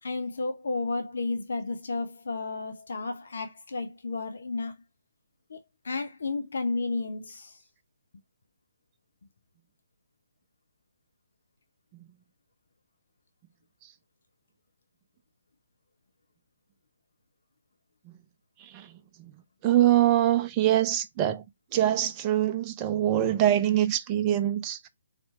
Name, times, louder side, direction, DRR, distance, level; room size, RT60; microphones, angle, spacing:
voice 1, 0.0-4.7 5.5-5.6 5.8-7.6, left 3 dB, 60° left, 0.7 m, -32 dB
voice 2, 19.6-21.4 21.7-24.8, right 12 dB, 25° right, 0.6 m, -23 dB
4.2 x 2.9 x 4.3 m
figure-of-eight pair, 135°, 0 cm